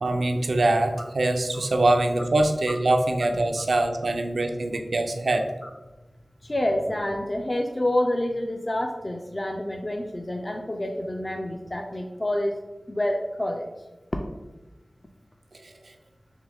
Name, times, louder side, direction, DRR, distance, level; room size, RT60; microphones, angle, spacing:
voice 1, 0.0-5.5 15.6-15.9, right 2 dB, 90° right, 4 dB, 0.4 m, -23 dB
voice 2, 6.4-12.5 12.9-13.7 14.1-14.2, left 1 dB, 30° left, 2 dB, 0.3 m, -28 dB
3.7 x 3.0 x 3.3 m, 1.1 s
wide cardioid pair, 70°, 0 cm